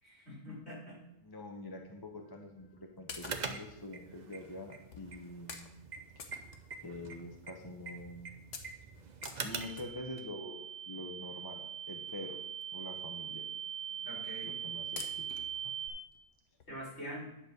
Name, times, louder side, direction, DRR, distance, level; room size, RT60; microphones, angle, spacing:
voice 1, 0.0-1.0 14.0-14.5 16.7-17.3, equal, 60° left, -5 dB, 4.7 m, -44 dB
voice 2, 1.2-5.7 6.8-8.3 9.4-11.6 11.9-12.4 12.7-13.4 14.4-15.3 15.6-15.9, left 1 dB, 20° left, 2 dB, 0.9 m, -46 dB
sound 1, 2.6-2.7 3.1-3.7 4.4-4.5 4.9-5.1 5.5-5.7 6.2-7.1 7.5-7.6 8.0-8.2 8.5-10.4 11.4-11.5 12.1-12.2 12.4-12.6 13.0-13.1 13.3-13.4 14.2-14.5 15.0-15.6 16.1-16.2 16.6-16.7, left 5 dB, 80° left, 1.3 m, -48 dB
sound 2, 3.2-9.9, right 5 dB, 40° right, 0.8 m, -45 dB
sound 3, 9.5-15.9, right 9 dB, 85° right, 1.7 m, -41 dB
10.0 x 4.4 x 6.7 m, 0.87 s
omnidirectional pair, 1.2 m